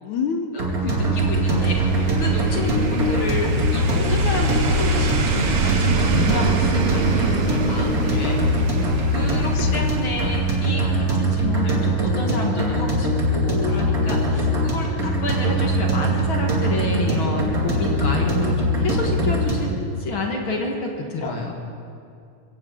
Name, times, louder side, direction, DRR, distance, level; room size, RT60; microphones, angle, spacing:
voice 1, 0.0-1.1 8.1-8.4 9.5-9.7 14.3-14.6 21.2-21.3, left 5 dB, 80° left, 6 dB, 2.5 m, -30 dB
voice 2, 0.5-8.6 9.1-19.7 20.0-21.5, left 2 dB, 50° left, 1 dB, 2.1 m, -29 dB
sound 1, 0.6-19.8, equal, 30° right, 2.5 m, -22 dB
sound 2, 0.7-11.1 11.3-11.4, right 4 dB, 60° right, 1.9 m, -26 dB
22.5 x 16.5 x 3.9 m, 2.4 s
omnidirectional pair, 3.4 m